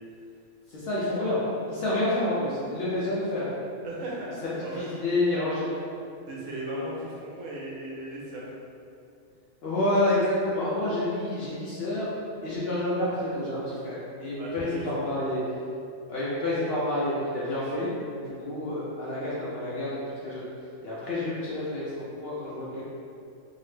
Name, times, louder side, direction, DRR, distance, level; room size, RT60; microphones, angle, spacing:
voice 1, 0.7-1.4 1.7-3.5 4.4-5.7 9.6-12.1 12.4-15.4 16.1-20.4 20.8-22.8, left 1 dB, 65° left, -8 dB, 0.6 m, -29 dB
voice 2, 3.8-4.4 4.6-4.9 6.3-8.5 14.3-15.2, right 1 dB, 75° right, -4 dB, 0.9 m, -36 dB
2.7 x 2.0 x 3.2 m, 2.5 s
omnidirectional pair, 1.4 m